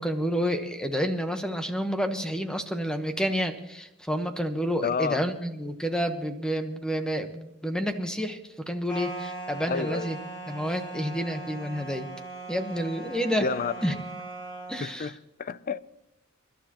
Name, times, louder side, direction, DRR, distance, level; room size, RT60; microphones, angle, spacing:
voice 1, 0.0-8.4 8.6-10.2 10.5-12.1 12.5-13.5 13.8-13.9 14.7-15.1, equal, 5° left, 1.1 m, -29 dB
voice 2, 4.8-5.2 9.7-10.1 13.4-13.7 14.8-15.1 15.4-15.8, left 5 dB, 40° left, 0.4 m, -29 dB
sound 1, 8.9-14.9, right 2 dB, 20° left, 2.1 m, -39 dB
28.5 x 12.0 x 2.9 m
head